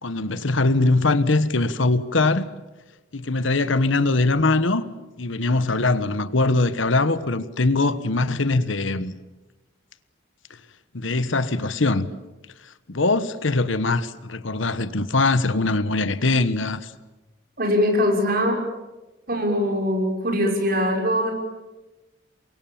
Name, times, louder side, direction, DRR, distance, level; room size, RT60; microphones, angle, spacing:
voice 1, 0.0-2.5 3.1-4.8 5.2-9.1 10.9-12.1 12.9-16.9, left 2 dB, 75° left, 1.3 m, -22 dB
voice 2, 17.6-18.6 19.3-21.3, equal, 50° right, 6.2 m, -22 dB
29.0 x 23.5 x 7.4 m
head